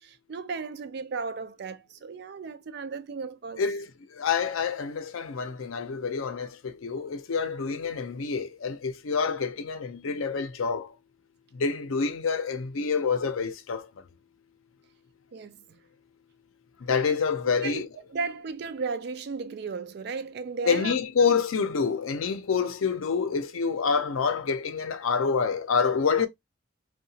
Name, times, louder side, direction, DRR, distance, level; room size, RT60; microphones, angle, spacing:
voice 1, 0.0-3.6 15.3-15.6 17.4-21.4, right 4 dB, 55° right, 0.3 m, -35 dB
voice 2, 4.2-10.9 11.5-13.9 16.8-17.9 20.7-26.3, left 5 dB, 85° left, 0.5 m, -27 dB
2.8 x 2.2 x 2.6 m
head